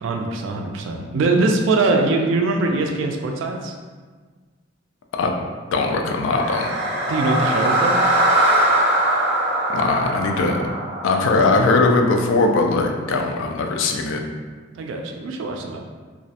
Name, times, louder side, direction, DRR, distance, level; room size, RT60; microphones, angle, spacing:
voice 1, 0.0-3.7 7.1-8.0 14.8-15.8, right 3 dB, 75° right, 2 dB, 0.3 m, -22 dB
voice 2, 5.7-6.7 9.7-10.6 11.0-14.2, left 3 dB, 75° left, 3 dB, 0.3 m, -20 dB
sound 1, 6.2-12.4, right 1 dB, 35° right, 0.7 m, -21 dB
2.3 x 2.0 x 2.7 m, 1.5 s
head